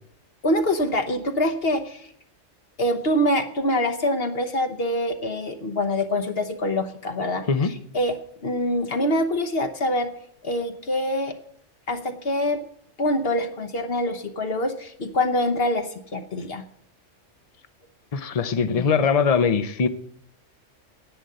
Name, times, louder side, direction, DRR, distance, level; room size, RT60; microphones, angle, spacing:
voice 1, 0.4-2.1 2.8-8.1 8.4-10.1 10.4-11.3 11.9-12.6 13.0-16.6, left 1 dB, 55° left, 7 dB, 1.2 m, -25 dB
voice 2, 18.1-19.9, left 5 dB, 35° left, 11 dB, 0.8 m, -21 dB
10.5 x 9.0 x 7.8 m, 0.69 s
omnidirectional pair, 1.3 m